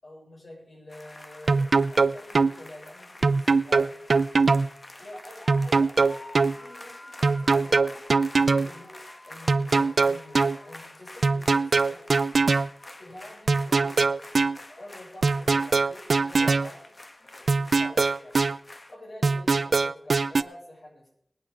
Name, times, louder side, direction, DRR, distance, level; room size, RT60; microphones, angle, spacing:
voice 1, 0.0-4.0 5.0-6.0 6.5-8.1 8.4-9.0 9.2-12.1 13.0-14.3 14.8-16.9 17.2-18.5 18.9-21.1, left 1 dB, 70° left, -4 dB, 7.0 m, -47 dB
sound 1, 0.9-19.0, left 1 dB, 40° left, 1.3 m, -46 dB
sound 2, 1.5-2.5 3.2-4.7 5.5-6.6 7.2-8.7 9.5-10.6 11.2-12.7 13.5-14.6 15.2-16.7 17.5-18.6 19.2-20.4, right 4 dB, 75° right, 0.4 m, -22 dB
22.0 x 9.0 x 3.7 m, 0.72 s
cardioid pair, 45°, 0 cm